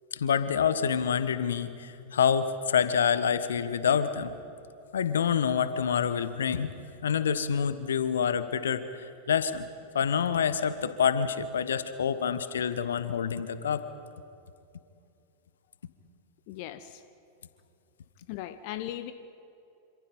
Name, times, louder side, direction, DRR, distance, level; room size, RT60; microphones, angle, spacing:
voice 1, 0.2-4.3 4.9-6.7 7.0-9.7 9.9-13.8, left 7 dB, 70° left, 13 dB, 1.3 m, -27 dB
voice 2, 16.5-17.0 18.3-19.1, left 13 dB, 50° left, 12 dB, 1.0 m, -38 dB
27.0 x 26.0 x 5.5 m, 2.6 s
figure-of-eight pair, 90°, 0 cm